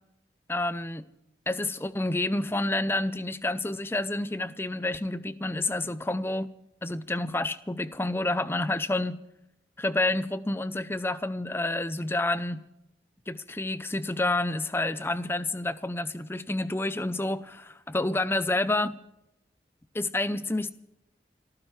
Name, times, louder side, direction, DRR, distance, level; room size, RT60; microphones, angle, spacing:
voice 1, 0.5-1.0 1.5-6.5 6.8-9.2 9.8-12.6 13.3-19.0 19.9-20.7, left 2 dB, 15° left, 0.6 m, -29 dB
28.5 x 14.5 x 3.2 m
head